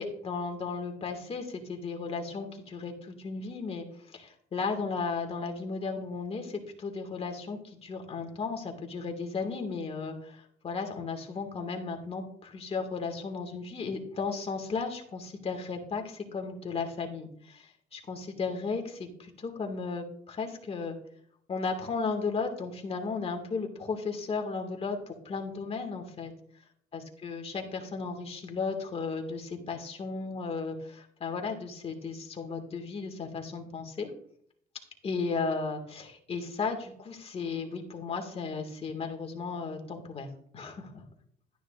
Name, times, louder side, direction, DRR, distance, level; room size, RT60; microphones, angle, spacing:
voice 1, 0.0-21.0 21.5-26.3 26.9-34.1 35.0-40.3 40.5-41.0, left 4 dB, 35° left, 4 dB, 2.1 m, -35 dB
12.5 x 10.0 x 2.5 m, 0.65 s
cardioid pair, 110°, 17 cm